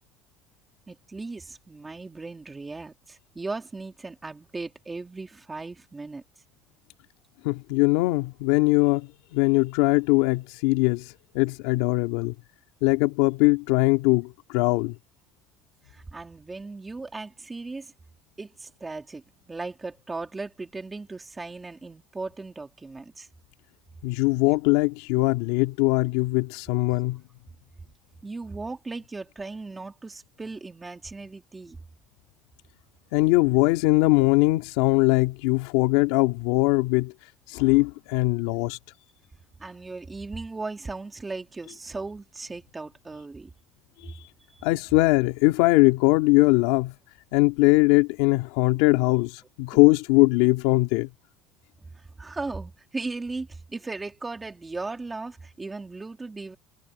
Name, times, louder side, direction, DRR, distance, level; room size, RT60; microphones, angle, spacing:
voice 1, 0.9-6.2 15.9-17.9 18.4-23.3 28.2-31.8 39.6-43.5 44.5-44.7 51.8-56.6, right 3 dB, 10° right, 3.0 m, -37 dB
voice 2, 7.4-11.1 11.3-12.3 12.8-15.0 24.0-27.2 33.1-37.1 37.5-38.8 44.6-46.9 47.3-51.1, left 21 dB, 90° left, 2.2 m, -21 dB
cardioid pair, 165°, 0 cm